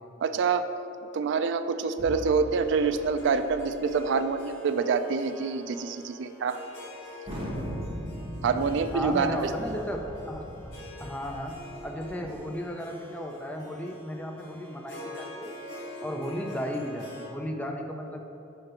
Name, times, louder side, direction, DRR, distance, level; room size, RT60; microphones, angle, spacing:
voice 1, 0.2-0.7 1.1-6.6 8.4-9.3, right 5 dB, 65° right, 10 dB, 0.3 m, -26 dB
Vehicle / Engine, 2.0-5.0, left 1 dB, 65° left, 1.4 m, -44 dB
Harp, 3.2-17.3, left 1 dB, 80° left, 1.2 m, -45 dB
Thunder, 7.3-12.4, equal, 30° right, 1.0 m, -38 dB
voice 2, 8.9-10.7 11.0-11.6 11.8-15.5 16.0-18.2, equal, 5° left, 2 dB, 0.4 m, -35 dB
5.1 x 4.8 x 4.4 m, 2.9 s
head